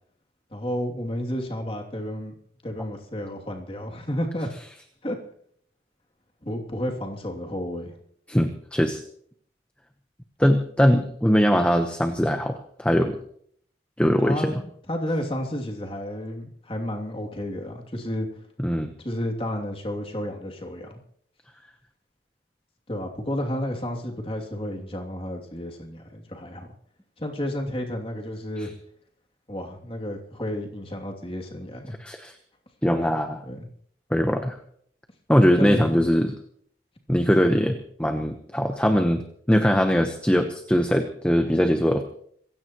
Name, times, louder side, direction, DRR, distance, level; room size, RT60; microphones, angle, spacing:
voice 1, 0.5-2.3 2.6-4.5 5.0-5.2 6.4-7.9 14.2-18.3 19.0-21.0 22.9-26.7 27.2-28.7 29.5-32.0 33.4-33.7 35.5-36.0 37.4-37.7, equal, 30° left, 1 dB, 2.8 m, -31 dB
voice 2, 8.3-9.0 10.4-13.2 14.0-14.5 18.6-18.9 28.6-28.7 32.0-32.3 32.8-33.4 34.1-34.5 35.3-36.3 37.1-42.0, equal, 5° left, 5 dB, 1.0 m, -21 dB
27.0 x 16.0 x 3.1 m, 0.63 s
head